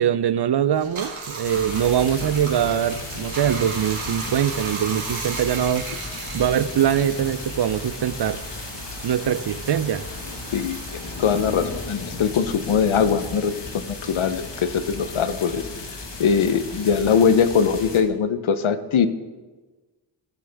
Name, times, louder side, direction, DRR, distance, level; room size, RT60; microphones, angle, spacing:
voice 1, 0.0-5.9 6.3-8.4 9.0-10.0, right 9 dB, 55° right, 15 dB, 0.6 m, -22 dB
Bathtub (filling or washing), 0.7-13.6 13.9-15.7, right 4 dB, 75° right, 2.1 m, -37 dB
sound 1, 1.4-18.0, left 3 dB, 60° left, 1.6 m, -35 dB
voice 2, 10.5-15.6 16.2-19.1, left 6 dB, 75° left, 11 dB, 0.8 m, -21 dB
17.5 x 6.7 x 3.5 m, 1.3 s
cardioid pair, 50°, 48 cm